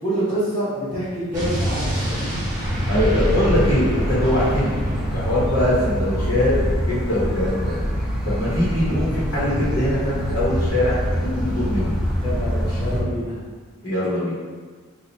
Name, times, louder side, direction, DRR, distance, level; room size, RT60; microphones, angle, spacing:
voice 1, 0.0-2.3 12.2-13.4, right 1 dB, 25° left, -13 dB, 1.0 m, -26 dB
Explosion, 1.3-6.1, equal, 20° right, 1.1 m, -27 dB
sound 1, 2.6-13.0, equal, 5° right, 0.7 m, -25 dB
voice 2, 2.9-4.7 5.1-7.7 8.2-11.9 13.8-14.3, left 1 dB, 75° left, -9 dB, 1.1 m, -22 dB
2.9 x 2.4 x 3.9 m, 1.5 s
head